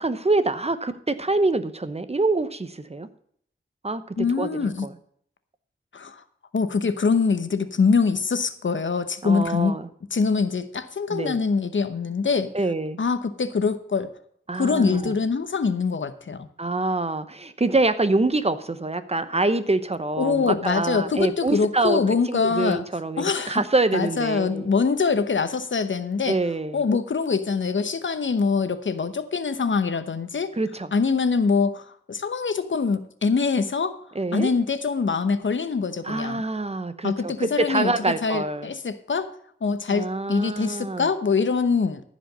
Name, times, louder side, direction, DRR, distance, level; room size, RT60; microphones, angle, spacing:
voice 1, 0.0-3.1 3.8-4.0 4.4-4.9 9.2-9.9 11.1-11.4 12.5-13.0 14.5-15.1 16.6-22.0 22.3-24.7 26.3-26.8 30.5-30.9 34.1-34.5 36.0-38.7 39.9-41.1, right 2 dB, 30° right, 12 dB, 0.9 m, -25 dB
voice 2, 4.2-4.9 5.9-6.2 6.5-9.8 10.1-12.5 13.0-14.1 14.5-16.5 20.2-22.8 23.2-23.6 23.9-26.4 26.7-30.5 30.9-34.0 34.3-36.4 37.0-37.9 38.2-39.3 39.6-42.0, left 5 dB, 70° left, 11 dB, 0.9 m, -24 dB
14.5 x 5.1 x 6.7 m, 0.64 s
wide cardioid pair, 70°, 21 cm